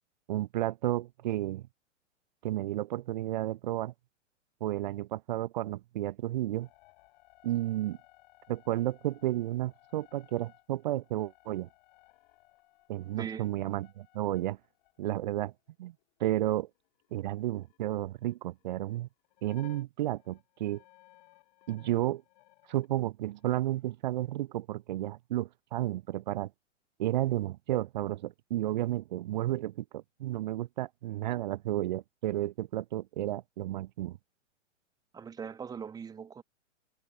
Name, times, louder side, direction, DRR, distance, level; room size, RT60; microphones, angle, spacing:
voice 1, 0.3-1.7 2.4-3.9 4.6-6.7 7.4-8.0 8.5-11.7 12.9-14.6 15.0-15.5 15.8-15.9 16.2-16.7 17.1-19.1 19.4-20.8 21.7-22.2 22.7-26.5 27.0-34.2, right 14 dB, 35° right, 0.8 m, -32 dB
sound 1, 6.6-16.5 16.7-19.0 19.2-22.9 23.3-23.9, left 21 dB, 35° left, 1.7 m, -61 dB
voice 2, 13.2-13.5 35.1-36.4, right 6 dB, 10° right, 1.3 m, -40 dB
figure-of-eight pair, 110°, 38 cm